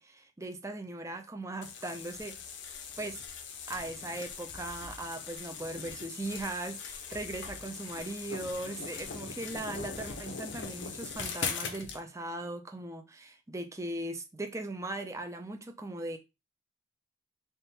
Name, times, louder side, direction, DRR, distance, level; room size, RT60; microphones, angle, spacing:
voice 1, 0.0-2.3 3.0-3.2 3.7-16.2, right 2 dB, 15° right, 0.5 m, -39 dB
sound 1, 1.6-12.0, left 5 dB, 70° left, 0.7 m, -41 dB
3.6 x 2.6 x 4.1 m
head